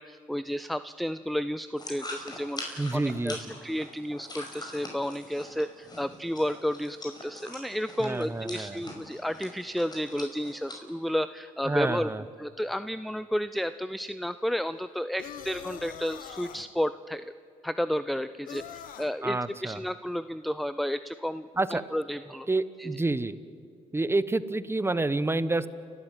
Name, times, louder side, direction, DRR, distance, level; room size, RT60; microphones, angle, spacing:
voice 1, 0.0-12.1 12.4-17.3 17.6-22.5 22.8-22.9, equal, ahead, 14 dB, 0.5 m, -32 dB
sound 1, 1.8-10.7, left 1 dB, 30° left, 5.6 m, -43 dB
voice 2, 2.8-3.4 8.0-8.8 11.6-12.2 19.2-19.8 21.5-21.8 22.5-23.3 23.9-25.7, right 2 dB, 15° right, 15 dB, 1.0 m, -28 dB
sound 2, 15.2-16.7 18.5-19.1, left 10 dB, 75° left, 1.1 m, -43 dB
30.0 x 12.5 x 9.0 m, 2.4 s
supercardioid pair, 65°, 14 cm